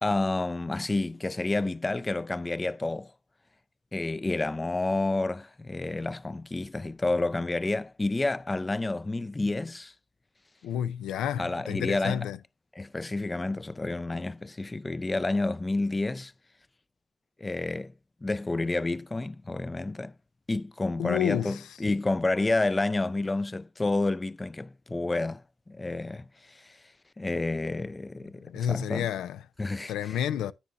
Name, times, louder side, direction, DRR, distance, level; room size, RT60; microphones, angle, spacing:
voice 1, 0.0-3.1 3.9-9.9 11.4-12.3 12.8-16.3 17.4-17.9 18.2-20.1 20.5-25.4 25.7-26.2 26.5-26.7 27.2-29.1 29.6-30.2, left 2 dB, 25° left, 0.4 m, -29 dB
voice 2, 10.6-12.4 21.0-21.7 28.4-29.4 29.9-30.5, left 10 dB, 85° left, 0.4 m, -30 dB
10.0 x 8.5 x 2.5 m
cardioid pair, 65°, 0 cm